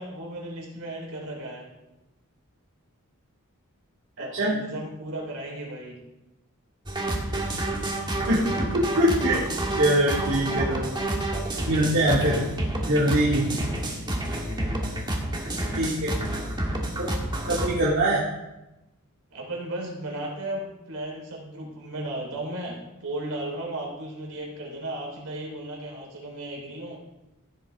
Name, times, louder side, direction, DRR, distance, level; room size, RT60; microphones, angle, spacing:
voice 1, 0.0-1.6 4.2-6.0 13.4-14.9 19.3-27.0, right 1 dB, 75° right, -1 dB, 3.9 m, -35 dB
sound 1, 6.9-17.7, right 1 dB, 20° right, 1.5 m, -29 dB
voice 2, 8.3-9.4 9.8-10.9 11.7-12.4 12.9-13.5 15.7-16.1 17.0-17.1 17.5-18.2, right 1 dB, 60° right, -7 dB, 2.1 m, -23 dB
15.0 x 8.0 x 3.6 m, 0.98 s
head